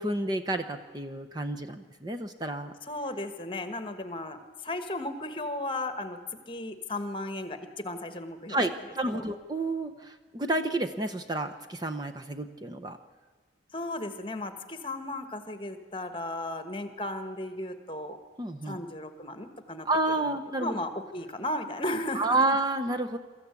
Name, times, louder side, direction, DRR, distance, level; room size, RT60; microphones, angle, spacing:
voice 1, 0.0-2.7 8.5-13.0 18.4-18.8 19.9-20.7 22.2-23.2, right 2 dB, 20° right, 6 dB, 0.7 m, -30 dB
voice 2, 2.8-6.2 6.5-8.6 9.1-9.2 13.7-18.2 18.6-22.4, left 1 dB, 30° left, 9 dB, 1.3 m, -35 dB
23.0 x 14.0 x 8.2 m, 1.3 s
head